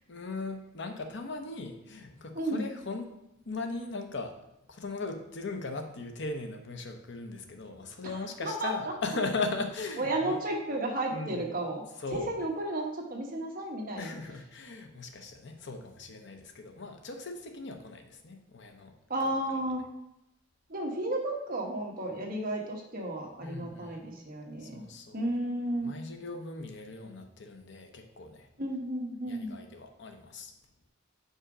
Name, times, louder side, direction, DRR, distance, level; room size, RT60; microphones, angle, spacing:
voice 1, 0.1-3.1 3.5-4.3 4.7-10.4 11.1-11.4 12.0-12.3 14.0-18.9 23.4-24.0 24.6-25.3 25.8-28.5 29.3-30.5, left 3 dB, 60° left, 5 dB, 0.8 m, -38 dB
voice 2, 2.3-2.7 8.0-8.7 10.0-11.8 12.1-14.1 19.1-19.8 20.7-24.8 25.1-25.9 28.6-29.6, right 1 dB, 45° right, 0 dB, 1.2 m, -33 dB
5.4 x 4.9 x 4.9 m, 0.85 s
head